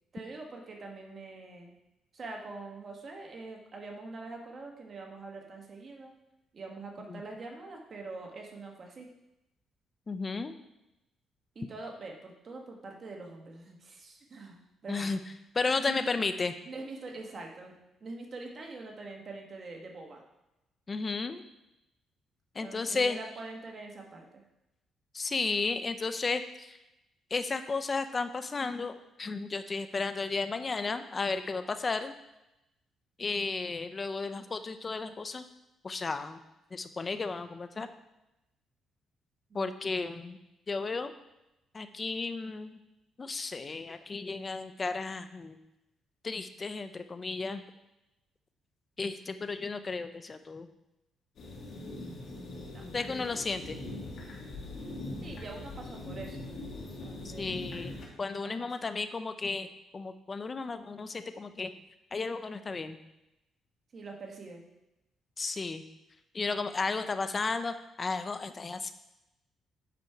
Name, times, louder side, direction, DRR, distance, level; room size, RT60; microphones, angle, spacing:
voice 1, 0.1-1.7 2.1-6.1 6.5-9.1 11.5-15.1 15.8-16.1 16.6-17.7 18.0-20.2 22.6-24.4 39.5-39.8 52.7-52.8 55.2-56.5 57.0-57.7 58.3-58.7 63.9-64.7, right 3 dB, 45° right, 1 dB, 1.6 m, -44 dB
voice 2, 10.1-10.5 14.9-15.2 15.5-16.5 20.9-21.4 22.5-23.2 25.1-26.8 27.3-32.1 33.2-35.4 35.8-36.4 36.7-37.9 39.5-40.4 40.7-41.1 41.7-42.8 43.2-45.6 46.2-47.6 49.0-50.7 52.9-53.8 57.2-59.7 59.9-61.7 62.1-63.0 65.4-65.8 66.3-68.9, left 4 dB, 35° left, 10 dB, 0.6 m, -33 dB
sound 1, 51.4-58.1, left 2 dB, 60° left, 2.0 m, -41 dB
8.5 x 5.2 x 4.6 m, 0.93 s
cardioid pair, 90°, 0 cm